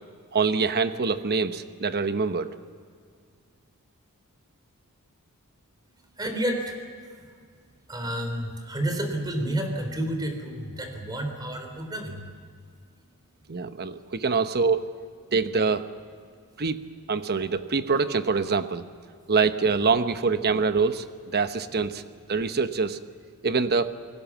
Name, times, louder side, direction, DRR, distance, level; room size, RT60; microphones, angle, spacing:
voice 1, 0.3-2.5 13.5-14.8 15.3-15.9 16.6-16.8 17.1-18.9 19.3-21.0 21.3-22.0 22.3-23.0 23.4-23.9, right 4 dB, 45° right, 10 dB, 1.0 m, -24 dB
voice 2, 6.2-6.8 7.1-7.4 7.9-12.3, right 1 dB, 20° right, 5 dB, 3.6 m, -30 dB
29.0 x 20.0 x 7.3 m, 2.1 s
head